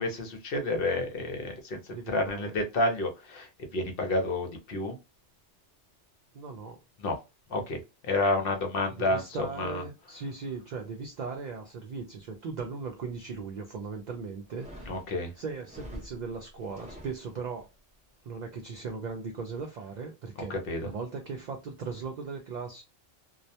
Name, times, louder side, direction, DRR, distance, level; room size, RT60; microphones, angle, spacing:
voice 1, 0.0-5.0 7.0-7.2 7.5-7.8 8.0-9.8 14.9-15.3 20.5-20.9, left 2 dB, 60° left, 0.7 m, -30 dB
voice 2, 1.9-2.5 6.3-6.8 9.0-15.0 15.4-17.6 18.2-20.6 20.8-22.8, right 4 dB, 60° right, 0.4 m, -38 dB
sound 1, 14.4-17.7, equal, 10° right, 0.6 m, -47 dB
2.2 x 2.1 x 2.6 m
omnidirectional pair, 1.2 m